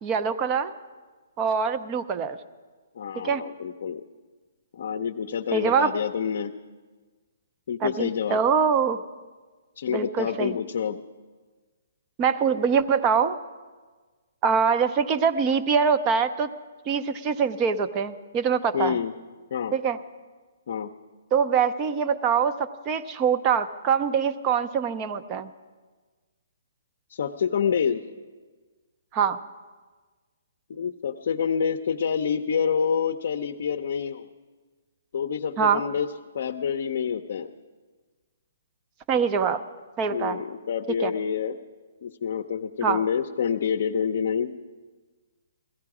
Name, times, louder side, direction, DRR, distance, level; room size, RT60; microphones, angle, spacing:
voice 1, 0.0-0.7 1.4-2.4 3.1-3.5 5.5-5.9 7.8-9.0 9.9-10.6 12.2-13.4 14.4-16.5 16.9-19.0 19.7-20.0 21.3-25.5 29.1-29.4 35.6-35.8 39.1-39.6 40.0-40.4 41.0-41.1 42.8-43.0, right 6 dB, 25° right, 11 dB, 0.6 m, -24 dB
voice 2, 3.0-4.0 4.7-6.5 7.7-8.4 9.8-11.0 18.7-19.1 19.5-19.7 20.7-20.9 27.1-28.0 30.7-34.3 35.1-36.1 36.3-37.5 40.1-41.6 42.0-44.5, left 7 dB, 60° left, 5 dB, 0.6 m, -27 dB
16.5 x 15.0 x 4.8 m, 1.4 s
hypercardioid pair, 155°, 0 cm